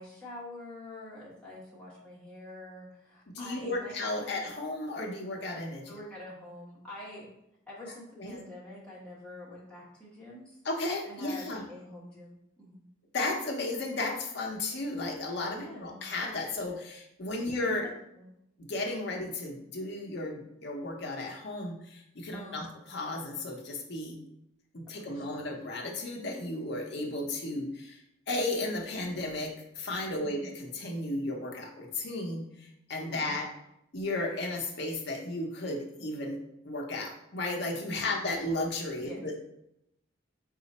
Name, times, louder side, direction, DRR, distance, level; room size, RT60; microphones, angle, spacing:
voice 1, 0.0-4.4 5.9-7.3 7.7-10.6 11.1-12.8 15.5-16.0 17.4-17.7 18.1-18.2 22.3-22.6 25.0-25.5 30.2-30.5 33.0-33.4 38.0-38.4 39.0-39.2, left 1 dB, 5° left, -8 dB, 1.2 m, -46 dB
voice 2, 3.3-5.9 8.2-8.4 10.6-11.6 13.1-17.9 18.7-24.2 24.7-28.0 28.3-33.5 33.9-36.4 36.6-39.3, left 2 dB, 55° left, 0 dB, 0.7 m, -34 dB
3.9 x 2.5 x 4.1 m, 0.79 s
head